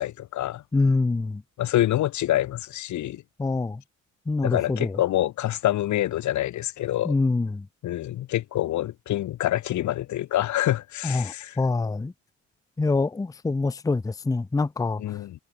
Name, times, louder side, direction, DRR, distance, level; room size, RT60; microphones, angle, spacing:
voice 1, 0.0-0.6 1.6-3.2 4.4-7.1 7.8-11.6 15.0-15.4, left 13 dB, 70° left, 1.1 m, -26 dB
voice 2, 0.7-1.4 3.4-3.8 4.3-5.0 7.0-7.6 11.0-12.1 12.8-15.0, left 3 dB, 10° left, 0.6 m, -25 dB
cardioid pair, 90°, 30 cm